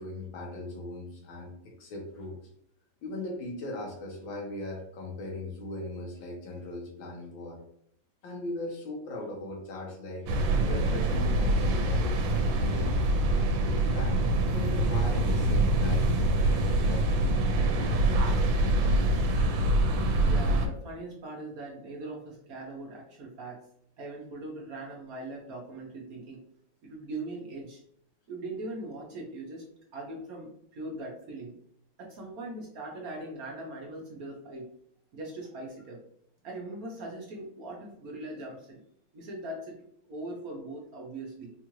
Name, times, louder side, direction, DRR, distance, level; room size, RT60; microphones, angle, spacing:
voice 1, 0.0-2.4 3.0-7.6 8.2-12.1 12.5-13.0 13.6-14.2 14.5-17.2 18.8-18.9, left 1 dB, 80° left, -1 dB, 1.8 m, -39 dB
sound 1, 10.3-20.7, right 1 dB, 85° right, 1.4 m, -25 dB
voice 2, 20.2-23.6 24.0-26.4 26.8-27.8 28.3-29.6 29.9-31.6 32.0-34.7 35.1-36.0 36.4-38.8 39.1-39.8 40.1-41.5, right 2 dB, 60° right, -1 dB, 1.0 m, -40 dB
4.3 x 2.4 x 3.0 m, 0.70 s
omnidirectional pair, 2.1 m